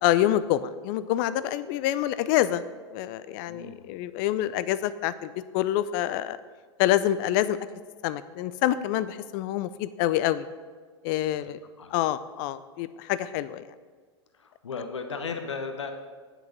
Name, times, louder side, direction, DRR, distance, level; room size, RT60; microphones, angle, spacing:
voice 1, 0.0-2.7 2.9-6.4 6.8-7.6 8.0-10.5 11.0-11.6 11.9-13.6, left 13 dB, 45° left, 15 dB, 0.4 m, -26 dB
voice 2, 3.5-3.9 11.8-11.9 14.4-15.9, left 5 dB, 75° left, 6 dB, 0.9 m, -35 dB
10.5 x 6.1 x 6.7 m, 1.6 s
figure-of-eight pair, 95°, 15 cm